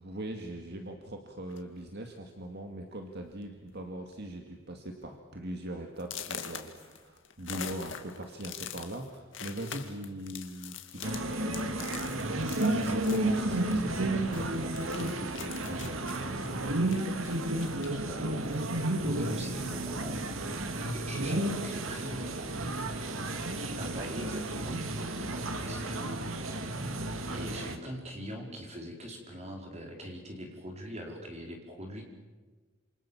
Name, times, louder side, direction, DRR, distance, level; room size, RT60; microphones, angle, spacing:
voice 1, 0.0-11.9 12.2-16.3, right 1 dB, 55° right, 3 dB, 2.3 m, -41 dB
sound 1, 1.5-1.8 2.6-2.7 3.1-3.4 3.7-4.1 4.6-4.7 5.1-5.2 6.0-14.1 14.3-18.1 18.4-19.5, left 8 dB, 65° left, 2.3 m, -44 dB
sound 2, 11.0-27.8, right 1 dB, 85° right, 2.4 m, -32 dB
voice 2, 17.6-18.2 19.0-20.2 20.9-22.6 23.8-24.8 25.3-26.7 27.3-32.1, equal, 35° right, 2 dB, 5.0 m, -42 dB
28.0 x 28.0 x 7.4 m, 1.3 s
head